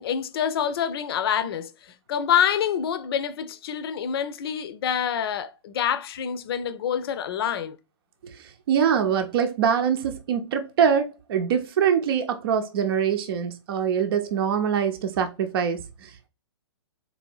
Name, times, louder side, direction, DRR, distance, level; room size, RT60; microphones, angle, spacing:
voice 1, 0.0-1.7 2.1-7.8, left 8 dB, 55° left, 0.6 m, -26 dB
voice 2, 8.2-16.3, right 7 dB, 55° right, 0.7 m, -24 dB
4.0 x 2.7 x 4.7 m
hypercardioid pair, 135°, 15 cm